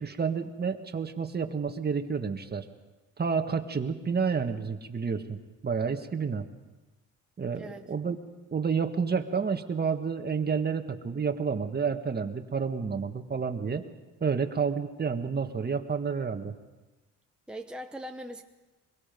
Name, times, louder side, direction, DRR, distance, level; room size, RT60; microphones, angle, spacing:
voice 1, 0.0-2.6 3.2-6.5 7.4-8.2 8.5-13.8 14.2-16.5, right 5 dB, 35° right, 7 dB, 1.7 m, -30 dB
voice 2, 7.5-7.9 17.5-18.4, equal, 5° right, 4 dB, 1.0 m, -40 dB
23.5 x 22.5 x 5.4 m, 1.1 s
cardioid pair, 90°, 30 cm